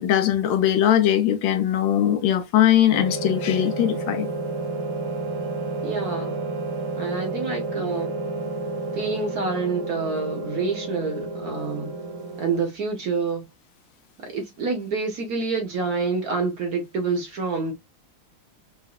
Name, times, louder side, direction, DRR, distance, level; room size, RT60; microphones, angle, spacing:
voice 1, 0.0-4.3, left 11 dB, 75° left, 1.3 m, -20 dB
sound 1, 2.9-12.6, right 3 dB, 80° right, 1.7 m, -30 dB
voice 2, 5.8-6.4 7.0-8.1 8.9-11.9 12.4-13.5 14.2-17.7, right 4 dB, 55° right, 1.1 m, -27 dB
4.9 x 2.5 x 2.3 m
omnidirectional pair, 2.2 m